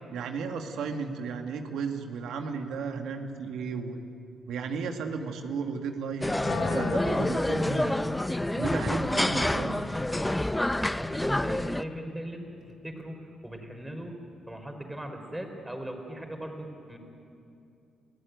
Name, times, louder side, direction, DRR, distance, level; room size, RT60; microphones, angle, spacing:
voice 1, 0.1-4.0 4.5-8.2 8.5-9.9, right 5 dB, 80° right, 5 dB, 1.9 m, -34 dB
sound 1, 6.2-11.8, left 1 dB, 10° left, 0.6 m, -28 dB
Wind instrument woodwind instrument, 6.4-12.5, left 5 dB, 65° left, 1.8 m, -40 dB
voice 2, 10.9-12.4 12.8-14.2 14.5-17.0, right 1 dB, 10° right, 4 dB, 4.2 m, -39 dB
29.0 x 15.5 x 9.4 m, 2.6 s
cardioid pair, 90°, 0 cm